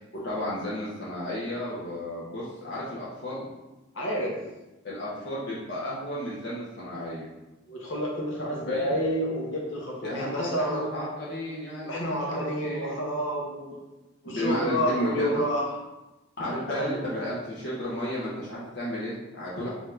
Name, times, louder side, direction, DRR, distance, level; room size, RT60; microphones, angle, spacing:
voice 1, 0.1-3.5 4.8-7.3 8.4-8.9 10.0-12.9 14.2-15.4 16.4-19.7, equal, 55° left, -8 dB, 0.9 m, -33 dB
voice 2, 3.9-4.3 7.7-10.8 11.8-13.8 14.2-15.6 16.7-17.0, equal, 70° left, -3 dB, 1.1 m, -29 dB
4.4 x 2.8 x 3.8 m, 1.0 s
head